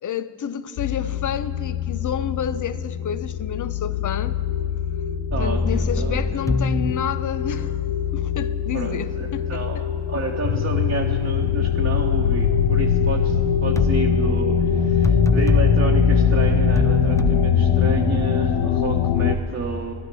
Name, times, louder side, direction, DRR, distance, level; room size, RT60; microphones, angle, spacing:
voice 1, 0.0-4.3 5.4-7.8 8.1-9.8, left 8 dB, 45° left, 0.7 m, -30 dB
sound 1, 0.8-19.4, left 9 dB, 75° left, 0.8 m, -23 dB
sound 2, 5.3-7.0 13.8-18.3, left 3 dB, 5° left, 0.5 m, -22 dB
voice 2, 5.3-6.4 8.7-19.9, right 4 dB, 30° right, 1.1 m, -31 dB
13.0 x 11.0 x 6.8 m
supercardioid pair, 60°, 45 cm